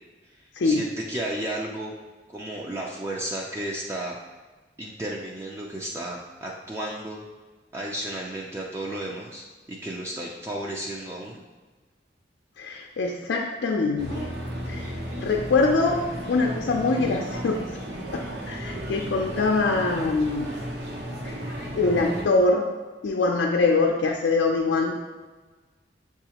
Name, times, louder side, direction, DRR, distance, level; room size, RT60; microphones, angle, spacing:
voice 1, 0.6-1.9 2.3-4.2 4.8-7.2 7.7-11.4 12.7-12.8, right 1 dB, 15° right, -3 dB, 0.4 m, -33 dB
voice 2, 12.6-14.3 14.7-14.9 15.2-16.0 16.3-17.6 18.1-20.5 21.2-21.4 21.8-22.7 23.0-25.0, left 3 dB, 90° left, 0 dB, 0.4 m, -23 dB
sound 1, 14.0-22.2, equal, 75° right, 0.9 m, -34 dB
6.8 x 2.4 x 2.9 m, 1.3 s
head